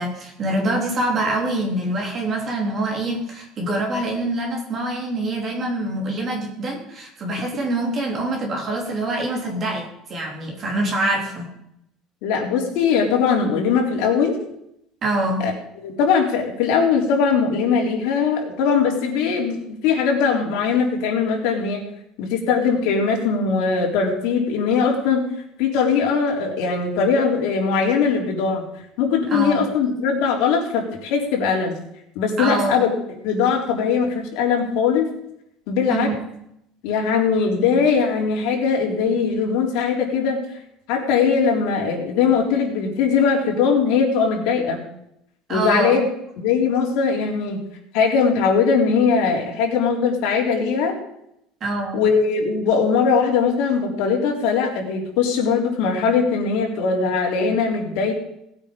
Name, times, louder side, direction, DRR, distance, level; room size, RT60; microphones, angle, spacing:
voice 1, 0.0-11.5 15.0-15.4 29.3-29.6 32.4-32.7 35.9-36.1 45.5-46.0 51.6-52.0, right 2 dB, 25° right, 0 dB, 3.2 m, -25 dB
voice 2, 12.2-14.4 15.4-15.5 15.8-21.9 22.2-25.2 25.6-28.6 29.0-31.7 32.2-32.9 33.2-35.1 35.7-36.1 36.8-40.4 40.9-44.8 45.5-46.1 46.4-47.6 47.9-51.0 51.9-58.1, left 5 dB, 60° left, 0 dB, 3.8 m, -20 dB
18.5 x 8.9 x 5.3 m, 0.77 s
cardioid pair, 180°, 0 cm